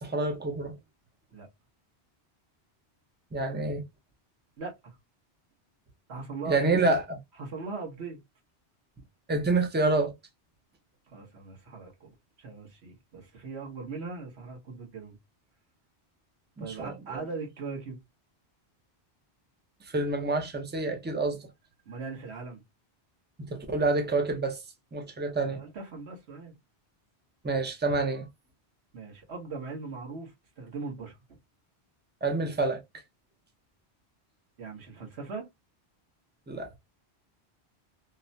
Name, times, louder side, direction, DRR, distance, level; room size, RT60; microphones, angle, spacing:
voice 1, 0.0-0.8 3.3-3.8 6.5-7.0 9.3-10.1 16.6-17.2 19.9-21.4 23.4-24.6 24.9-25.6 27.4-28.3 32.2-32.8 36.5-36.8, right 3 dB, 15° right, 0.3 m, -28 dB
voice 2, 4.6-5.0 6.1-7.0 7.4-8.2 11.1-12.1 12.4-15.2 16.6-18.0 21.8-22.6 25.3-26.5 28.9-31.2 34.6-35.5, right 4 dB, 75° right, 1.3 m, -39 dB
3.0 x 2.1 x 2.5 m
omnidirectional pair, 1.1 m